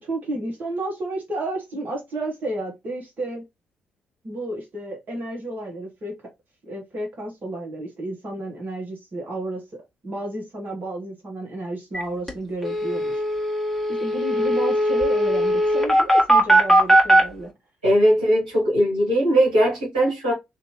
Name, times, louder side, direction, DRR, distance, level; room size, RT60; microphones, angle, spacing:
voice 1, 0.0-3.4 4.2-6.1 6.6-13.2 13.9-17.5, right 1 dB, 45° right, 1.5 m, -31 dB
sound 1, 11.9-12.0 12.3-12.4 12.6-17.2, right 1 dB, 5° left, 1.4 m, -19 dB
voice 2, 17.8-20.3, equal, 80° right, 1.6 m, -19 dB
3.3 x 2.8 x 3.1 m
figure-of-eight pair, 40°, 4 cm